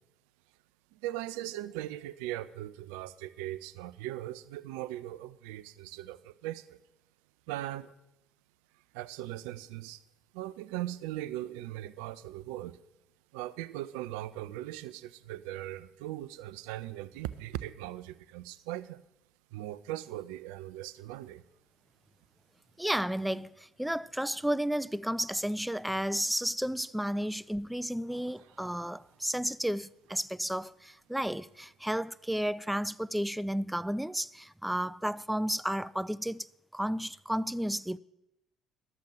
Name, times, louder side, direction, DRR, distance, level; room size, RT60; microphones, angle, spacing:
voice 1, 0.9-6.8 7.5-7.9 8.9-10.0 10.3-12.8 13.3-19.0 19.5-21.4, right 14 dB, 65° right, 0.4 m, -39 dB
voice 2, 22.8-36.5 36.7-38.0, equal, 5° right, 0.3 m, -32 dB
12.0 x 7.1 x 6.2 m
figure-of-eight pair, 50°, 0 cm